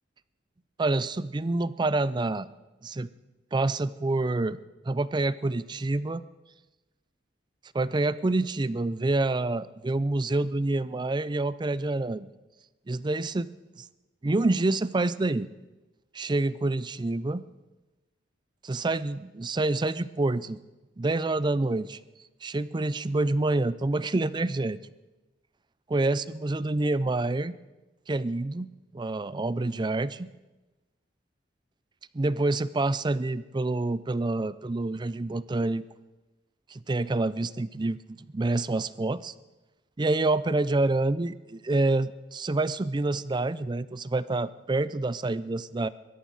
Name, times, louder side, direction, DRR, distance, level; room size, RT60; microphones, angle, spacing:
voice 1, 0.8-2.5 2.8-3.1 3.5-4.6 4.8-6.2 7.7-12.3 12.9-13.5 13.8-13.9 14.2-15.5 16.1-17.4 18.6-20.6 21.0-22.0 22.4-24.8 25.9-27.5 28.1-30.3 32.1-35.8 36.7-39.3 40.0-45.9, right 2 dB, 25° right, 16 dB, 0.4 m, -27 dB
23.5 x 13.5 x 4.0 m, 1.1 s
head